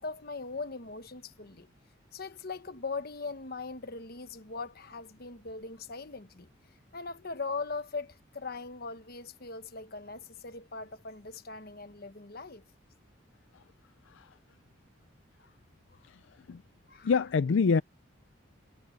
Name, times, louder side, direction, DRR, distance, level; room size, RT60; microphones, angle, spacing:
voice 1, 0.0-1.7 2.1-6.5 6.9-12.6 15.9-16.1 16.9-17.1, left 4 dB, 50° left, 1.2 m, -40 dB
voice 2, 17.0-17.8, left 5 dB, 70° left, 0.4 m, -26 dB
head